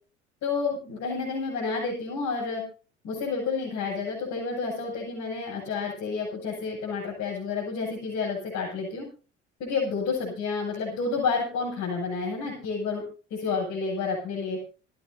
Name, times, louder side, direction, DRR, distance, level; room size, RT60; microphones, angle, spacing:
voice 1, 0.4-2.6 3.0-9.1 9.6-13.0 13.3-14.6, left 4 dB, 55° left, -5 dB, 7.8 m, -30 dB
28.0 x 10.0 x 2.8 m, 0.37 s
figure-of-eight pair, 60°, 34 cm